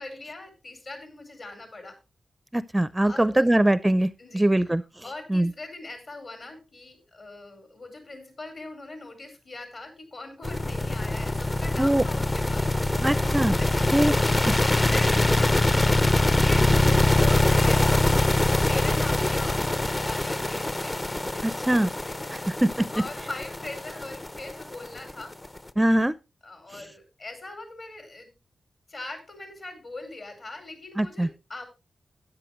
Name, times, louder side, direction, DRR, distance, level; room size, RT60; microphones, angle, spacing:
voice 1, 0.0-2.0 3.0-3.5 4.2-4.7 5.0-12.7 13.6-21.7 22.0-22.5 22.9-25.3 26.4-28.3 28.9-31.7, left 2 dB, 55° left, 6 dB, 4.9 m, -41 dB
voice 2, 2.5-4.8 5.3-5.5 11.8-12.0 13.0-13.6 13.9-14.1 14.5-14.6 21.4-21.9 22.3-22.9 25.8-26.1 31.0-31.3, right 1 dB, 15° right, 15 dB, 0.5 m, -22 dB
sound 1, 10.4-25.6, left 2 dB, 25° left, 0.6 m, -23 dB
13.0 x 9.9 x 3.1 m, 0.26 s
wide cardioid pair, 85°, 0 cm